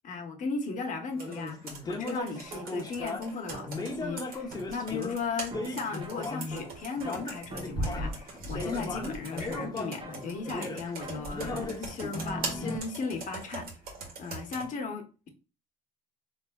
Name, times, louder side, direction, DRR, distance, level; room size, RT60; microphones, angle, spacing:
voice 1, 0.0-13.7 14.2-15.3, left 4 dB, 50° left, 1.0 m, -36 dB
sound 1, 1.1-3.3 3.7-6.7 7.0-12.8, left 3 dB, 25° left, 0.7 m, -37 dB
Computer keyboard, 1.2-14.7, right 2 dB, 65° right, 1.6 m, -41 dB
sound 2, 2.3-12.2, right 3 dB, 30° right, 0.8 m, -47 dB
3.9 x 3.5 x 2.3 m
cardioid pair, 110°, 17 cm